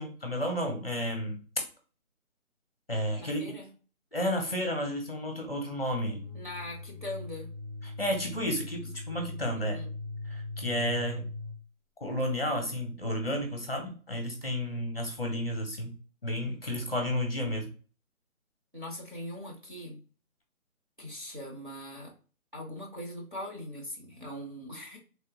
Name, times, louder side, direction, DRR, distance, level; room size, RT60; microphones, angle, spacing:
voice 1, 0.0-1.4 2.9-3.5 4.1-6.2 7.8-9.8 10.3-11.3 12.0-16.0 16.2-17.7, equal, 40° left, 3 dB, 0.6 m, -32 dB
voice 2, 3.2-3.7 6.3-7.5 9.6-9.9 18.7-20.0 21.0-22.1 22.5-25.0, left 1 dB, 35° right, -2 dB, 0.6 m, -41 dB
sound 1, 6.0-11.6, left 2 dB, 85° right, 1.4 m, -40 dB
3.2 x 2.2 x 2.8 m, 0.38 s
figure-of-eight pair, 175°, 44 cm